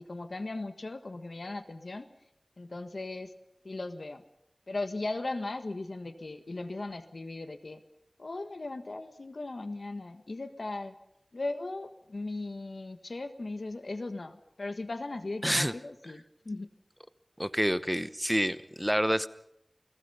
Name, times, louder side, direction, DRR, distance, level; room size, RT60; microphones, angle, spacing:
voice 1, 0.0-2.1 2.6-3.3 3.6-4.2 4.7-7.8 8.2-10.9 11.3-16.7, left 2 dB, 90° left, 9 dB, 1.5 m, -37 dB
voice 2, 15.4-15.7 17.4-19.3, equal, 5° right, 13 dB, 0.9 m, -28 dB
29.0 x 19.0 x 5.6 m, 0.78 s
wide cardioid pair, 55°, 0 cm